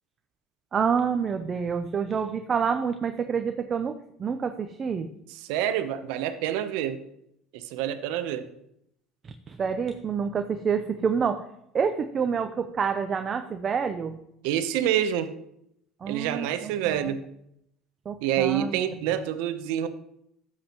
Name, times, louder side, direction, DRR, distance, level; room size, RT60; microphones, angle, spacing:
voice 1, 0.7-3.9 4.2-5.1 9.5-11.4 11.7-14.2 16.0-17.1 18.1-18.8, right 6 dB, 35° right, 7 dB, 0.7 m, -28 dB
voice 2, 5.4-7.0 7.5-8.5 14.4-15.3 16.1-17.2 18.2-19.9, right 10 dB, 80° right, 10 dB, 0.9 m, -27 dB
12.5 x 7.5 x 3.1 m, 0.77 s
supercardioid pair, 115°, 0 cm